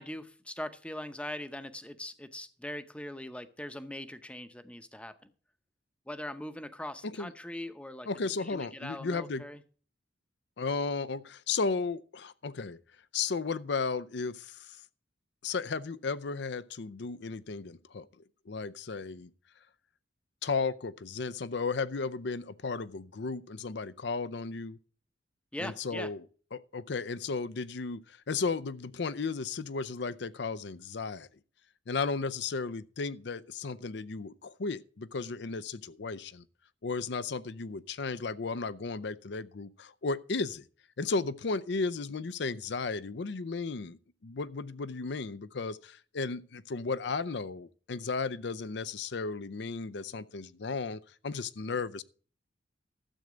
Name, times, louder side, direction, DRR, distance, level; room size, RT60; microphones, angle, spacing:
voice 1, 0.0-5.3 6.1-8.1 8.4-9.6 25.5-26.1, left 1 dB, 5° left, 0.7 m, -41 dB
voice 2, 8.0-9.4 10.6-12.8 13.1-14.8 15.4-18.1 18.5-19.3 20.4-24.8 25.6-26.2 26.5-31.3 31.9-36.4 36.8-40.6 41.0-52.0, left 4 dB, 65° left, 0.6 m, -34 dB
12.5 x 7.9 x 5.0 m
head